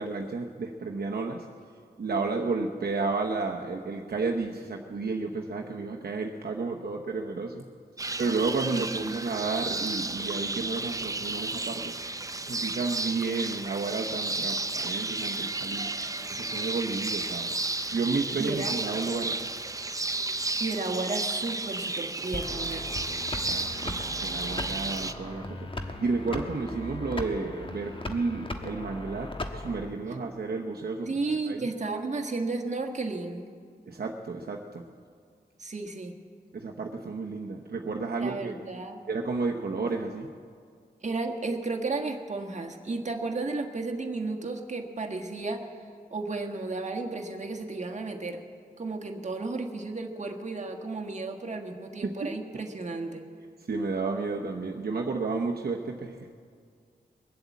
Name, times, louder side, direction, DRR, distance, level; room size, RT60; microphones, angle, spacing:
voice 1, 0.0-1.4 2.0-7.6 8.2-11.9 12.4-15.9 16.3-17.6 17.9-19.5 23.3-31.7 33.9-34.8 36.5-38.5 39.1-40.3 52.0-52.3 53.7-56.3, right 4 dB, 65° right, 1 dB, 0.9 m, -32 dB
sound 1, 8.0-25.1, right 2 dB, 20° right, 0.6 m, -33 dB
voice 2, 8.7-9.2 18.4-18.7 20.6-22.9 30.2-30.3 31.1-33.5 35.6-36.1 38.2-39.0 41.0-45.7 46.1-48.4 48.8-53.2, right 3 dB, 45° right, 3 dB, 1.5 m, -33 dB
sound 2, 22.3-29.9, left 2 dB, 30° left, 1.2 m, -38 dB
21.5 x 7.9 x 8.3 m, 2.1 s
wide cardioid pair, 115°, 17 cm